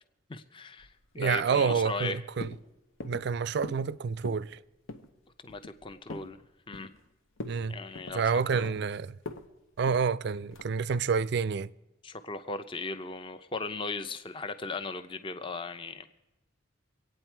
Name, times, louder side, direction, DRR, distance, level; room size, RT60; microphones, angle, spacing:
voice 1, 0.3-0.9 1.1-2.2 5.4-6.4 6.7-6.9 7.7-8.7 12.0-16.1, left 3 dB, 25° left, 0.5 m, -37 dB
sound 1, 0.8-1.4 1.7-2.1 2.4-2.6 3.0-3.3 3.6-3.9 4.2-4.5 4.9-5.1 5.5-6.3 6.7-7.1 7.4-7.6 7.9-8.9 9.3-9.5 9.9-10.1 10.5-10.8, left 2 dB, 85° left, 0.9 m, -42 dB
voice 2, 1.2-2.5 3.0-4.6 7.4-7.7 8.1-9.2 9.8-11.7, right 5 dB, 55° right, 0.4 m, -28 dB
24.5 x 9.0 x 4.5 m
head